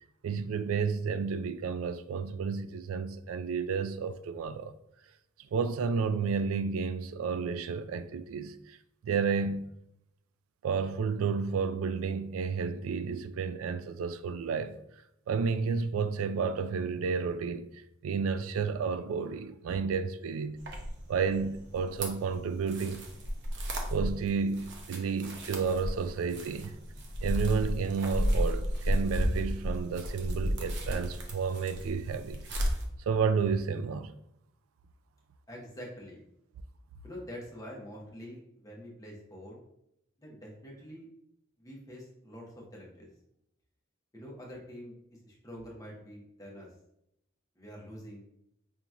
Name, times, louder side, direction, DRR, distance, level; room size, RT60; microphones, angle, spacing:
voice 1, 0.2-4.7 5.5-8.8 9.0-9.7 10.6-14.8 15.3-17.7 18.0-20.6 21.1-23.1 23.9-26.7 27.2-32.7 33.1-34.1, right 5 dB, 75° right, 0.3 m, -31 dB
sound 1, 20.6-32.8, equal, 60° right, 0.7 m, -33 dB
voice 2, 35.5-36.2 37.0-39.6 40.2-41.1 41.6-43.1 44.1-46.7 47.5-48.3, equal, 15° left, 0.9 m, -46 dB
5.2 x 2.9 x 2.4 m
head